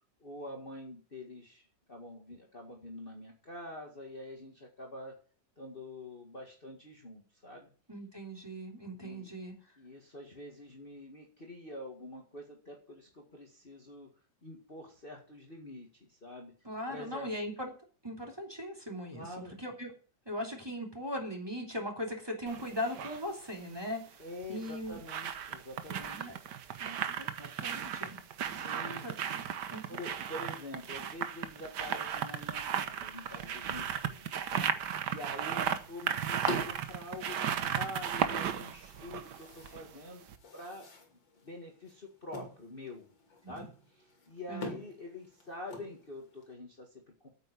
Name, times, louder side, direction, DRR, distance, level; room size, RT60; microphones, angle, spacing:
voice 1, 0.2-5.1 5.6-7.7 9.0-9.3 9.8-14.1 14.4-16.5 16.9-17.3 19.1-19.6 24.2-26.3 28.5-29.1 29.9-34.7 35.1-40.2 40.5-43.1 43.5-47.3, left 1 dB, 30° left, 0 dB, 2.0 m, -46 dB
voice 2, 7.9-9.7 16.6-17.7 18.0-19.3 19.6-19.9 20.2-24.2 24.5-25.0 25.9-26.4 26.8-28.2 28.5-29.1 29.7-30.0 43.4-43.7 44.5-44.7, equal, 10° right, 0 dB, 3.2 m, -39 dB
sound 1, 22.5-23.2 24.4-40.0 40.3-40.4, right 8 dB, 65° right, 1.6 m, -35 dB
sound 2, 35.7-46.5, left 2 dB, 75° left, 3.3 m, -47 dB
9.0 x 8.3 x 8.3 m, 0.40 s
omnidirectional pair, 2.0 m